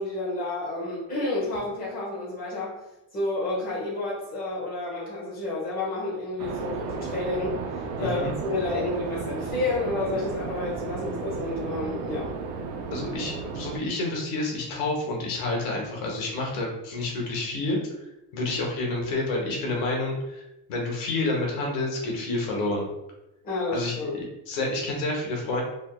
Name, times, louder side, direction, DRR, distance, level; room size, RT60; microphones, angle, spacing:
voice 1, 0.0-2.7 3.1-7.5 8.0-12.3 23.4-24.1, left 2 dB, 20° left, -7 dB, 1.2 m, -30 dB
sound 1, 6.4-13.8, right 4 dB, 70° right, 0.5 m, -34 dB
voice 2, 8.0-8.3 12.9-17.8 18.3-22.9 23.7-25.6, left 2 dB, 85° left, -1 dB, 1.1 m, -29 dB
3.4 x 2.6 x 2.3 m, 0.90 s
cardioid pair, 160°, 43 cm